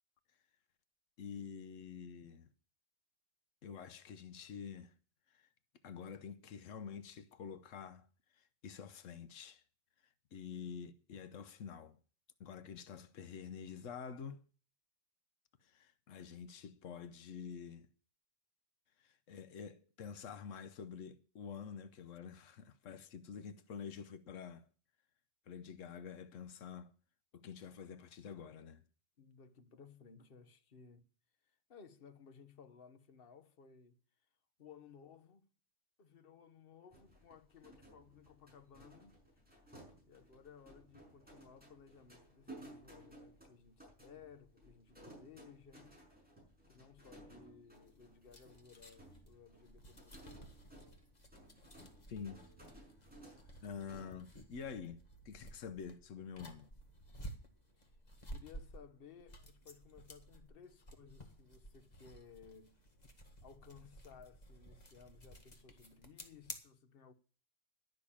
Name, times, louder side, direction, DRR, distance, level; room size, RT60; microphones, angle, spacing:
voice 1, 1.2-2.5 3.6-4.9 5.3-5.5 5.8-8.1 8.3-9.6 10.3-12.0 12.4-14.4 15.6-17.9 19.0-24.7 25.5-26.9 27.3-28.8 52.1-52.5 53.6-56.7, left 6 dB, 90° left, 1.2 m, -48 dB
voice 2, 29.2-31.1 31.4-34.0 34.6-35.5 36.0-39.4 39.7-45.9 46.6-50.6 57.7-58.0 58.3-62.8 63.4-67.1, left 6 dB, 50° left, 1.2 m, -59 dB
sound 1, 36.9-54.1, right 1 dB, 5° right, 6.1 m, -59 dB
sound 2, 47.7-66.6, equal, 35° left, 1.8 m, -54 dB
12.0 x 6.6 x 8.5 m
omnidirectional pair, 1.3 m